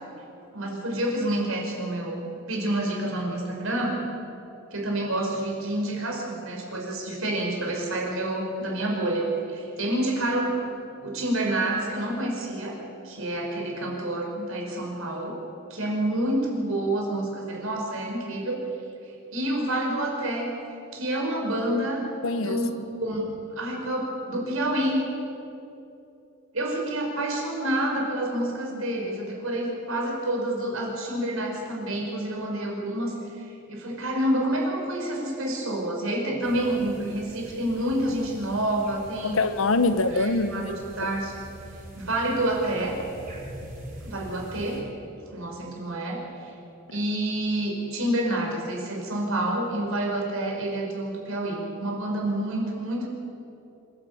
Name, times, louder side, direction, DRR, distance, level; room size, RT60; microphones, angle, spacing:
voice 1, 0.5-4.0 4.7-10.6 11.0-15.4 15.7-18.6 19.3-20.6 20.9-22.0 22.3-22.7 23.0-23.3 23.6-25.0 26.5-39.4 40.1-41.3 41.9-43.0 44.0-44.8 45.3-46.5 46.9-53.1, right 1 dB, 80° right, 0 dB, 5.2 m, -28 dB
voice 2, 22.2-22.6 39.2-40.7 41.0-41.1, left 3 dB, 75° left, 11 dB, 1.2 m, -24 dB
sound 1, 36.4-44.8, equal, 40° right, 4.3 m, -44 dB
26.5 x 12.5 x 8.6 m, 2.8 s
head